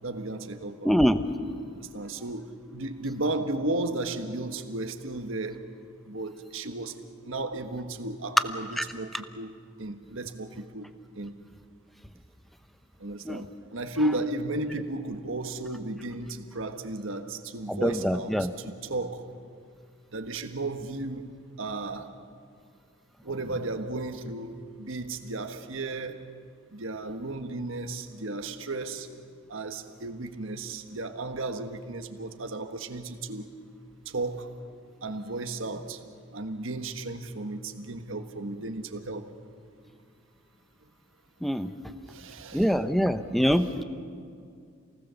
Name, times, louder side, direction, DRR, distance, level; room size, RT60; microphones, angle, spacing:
voice 1, 0.0-0.9 1.7-5.7 6.1-11.4 13.0-19.3 20.1-22.2 23.2-26.3 26.7-29.1 29.5-33.5 34.0-34.5 35.0-36.0 36.3-39.3 42.0-42.9 43.6-43.7, right 2 dB, 70° right, 1.5 m, -34 dB
voice 2, 0.8-1.2 13.3-13.4 17.7-18.5 41.4-41.7 42.5-43.8, equal, ahead, 0.8 m, -24 dB
28.0 x 19.0 x 7.1 m
head